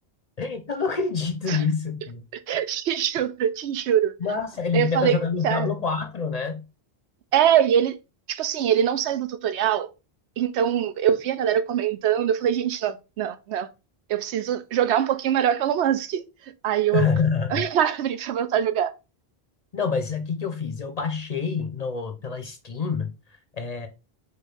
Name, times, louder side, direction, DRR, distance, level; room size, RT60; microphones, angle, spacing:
voice 1, 0.4-2.2 4.2-6.6 16.9-17.6 19.7-23.1 23.6-23.9, left 5 dB, 50° left, 0.6 m, -26 dB
voice 2, 2.3-4.1 4.7-5.2 5.4-5.7 7.3-8.0 8.3-9.9 10.4-13.7 14.1-16.2 16.6-17.1 17.5-18.9, right 9 dB, 85° right, 0.9 m, -23 dB
4.6 x 2.4 x 4.8 m
omnidirectional pair, 1.1 m